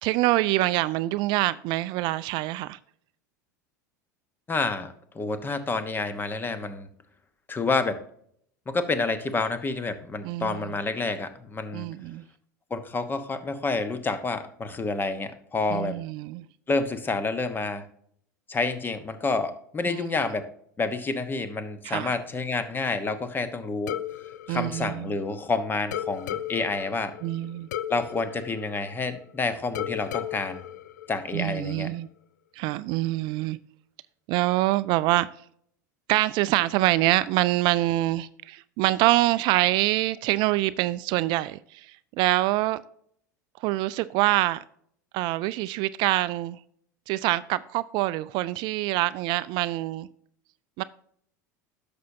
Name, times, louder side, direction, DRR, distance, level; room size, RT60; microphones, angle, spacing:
voice 1, 0.0-2.8 10.2-10.7 11.7-12.2 15.7-16.4 19.9-20.0 21.8-22.1 24.5-25.1 27.2-27.7 31.3-32.1 32.6-33.6 34.3-35.3 36.1-42.8 43.6-44.6 45.1-46.6 47.1-50.1 50.8-50.9, right 17 dB, 50° right, 0.3 m, -25 dB
voice 2, 4.5-6.9 7.5-8.0 8.7-11.9 12.7-16.0 16.7-17.8 18.5-20.5 20.8-24.0 24.5-27.1 27.9-30.6 31.1-31.9, left 3 dB, 20° left, 1.1 m, -29 dB
sound 1, 23.9-25.5 25.9-29.3 29.8-31.7, left 11 dB, 75° left, 0.4 m, -36 dB
11.0 x 6.9 x 2.7 m
hypercardioid pair, 85°, 10 cm